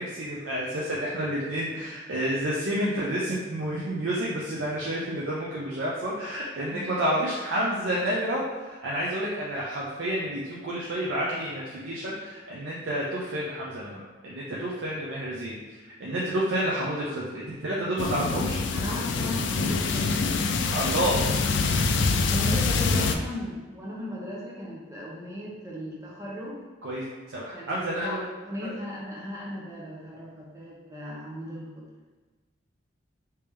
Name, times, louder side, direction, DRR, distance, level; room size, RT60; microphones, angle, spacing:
voice 1, 0.0-18.6 20.7-21.2 26.8-28.2 28.6-28.7, right 1 dB, 75° right, -5 dB, 0.6 m, -30 dB
sound 1, 18.0-23.2, left 4 dB, 65° left, 0.3 m, -25 dB
voice 2, 18.7-20.1 20.6-21.7 22.3-26.6 27.5-31.9, equal, 15° right, -5 dB, 0.7 m, -37 dB
3.4 x 2.9 x 3.4 m, 1.3 s
head